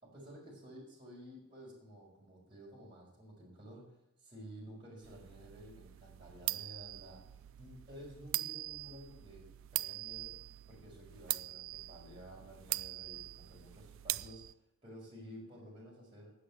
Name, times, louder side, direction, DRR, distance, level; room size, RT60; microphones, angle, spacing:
voice 1, 0.0-14.4 14.8-16.3, equal, 25° right, -5 dB, 5.0 m, -53 dB
sound 1, 5.0-14.5, right 17 dB, 65° right, 0.4 m, -42 dB
11.5 x 8.5 x 7.3 m, 0.81 s
head